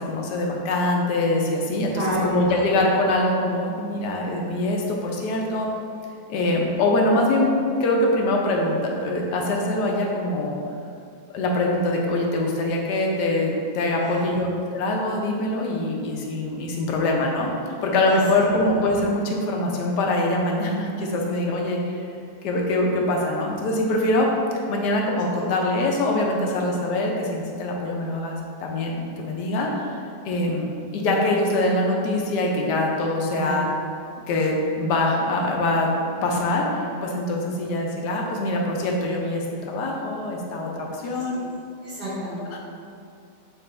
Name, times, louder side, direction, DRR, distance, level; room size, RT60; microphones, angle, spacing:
voice 1, 0.0-5.7 6.3-7.5 7.8-10.6 11.3-17.5 17.8-22.0 22.4-24.3 24.7-29.9 30.2-33.7 34.3-35.9 36.2-41.4 42.5-42.6, left 1 dB, 80° left, -1 dB, 1.2 m, -23 dB
voice 2, 1.9-2.6 14.0-14.3 18.1-18.2 25.3-25.5 33.4-33.5 41.0-41.4 41.8-42.5, right 1 dB, 75° right, -9 dB, 2.0 m, -31 dB
6.2 x 2.5 x 3.2 m, 2.5 s
omnidirectional pair, 1.8 m